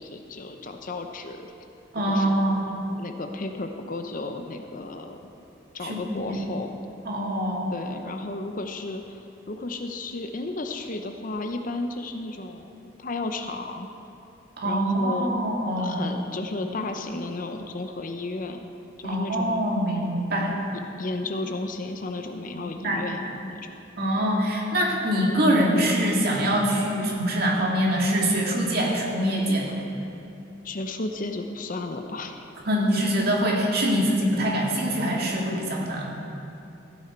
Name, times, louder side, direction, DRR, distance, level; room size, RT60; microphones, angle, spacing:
voice 1, 0.0-1.5 2.1-2.3 2.9-5.2 5.7-6.7 7.7-13.9 14.6-15.4 15.8-18.6 19.0-19.6 21.0-23.7 24.2-24.4 30.6-32.5, left 2 dB, 45° left, 6 dB, 0.7 m, -33 dB
voice 2, 1.9-2.7 5.8-6.4 7.1-7.7 14.6-16.0 19.0-20.5 22.5-23.0 24.0-29.8 32.7-36.1, equal, 50° right, -3 dB, 2.1 m, -24 dB
15.0 x 9.8 x 4.4 m, 2.9 s
head